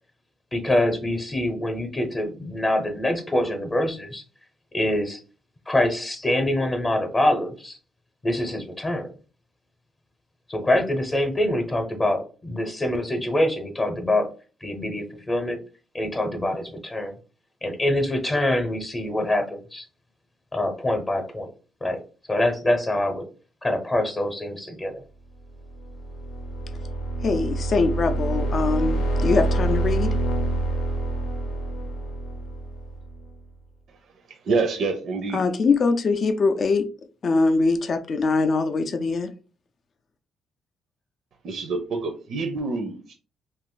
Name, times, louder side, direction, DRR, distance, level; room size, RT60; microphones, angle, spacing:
voice 1, 0.5-4.2 4.7-5.2 5.7-7.8 8.2-9.1 10.5-14.3 14.6-15.6 15.9-17.1 17.6-19.9 20.5-21.5 21.8-22.0 22.3-23.3 23.6-25.0, left 1 dB, 25° left, 0.7 m, -25 dB
sound 1, 25.6-33.3, right 2 dB, 90° left, 0.7 m, -27 dB
voice 2, 27.2-30.1 35.3-36.9 37.2-39.3, left 3 dB, 50° left, 0.4 m, -22 dB
voice 3, 33.9-35.4 41.4-43.1, right 4 dB, 65° right, 0.5 m, -27 dB
2.5 x 2.5 x 3.8 m
cardioid pair, 90°, 0 cm